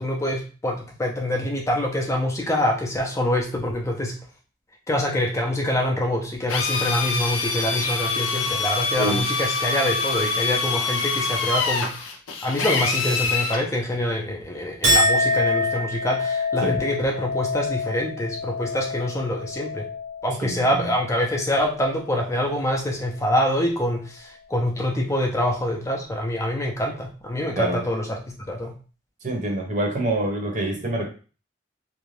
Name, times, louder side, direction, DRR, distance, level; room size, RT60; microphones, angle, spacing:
voice 1, 0.0-4.2 4.9-19.9 20.2-28.7, left 1 dB, 15° left, 0 dB, 0.4 m, -25 dB
Drill, 6.5-13.6, left 4 dB, 90° left, 0.5 m, -25 dB
Chink clink, 14.8-21.4 21.8-22.4, left 1 dB, 70° right, 1.0 m, -26 dB
voice 2, 20.4-20.9 27.6-27.8 29.2-31.1, right 1 dB, 40° right, 1 dB, 0.8 m, -26 dB
2.5 x 2.2 x 3.1 m, 0.37 s
head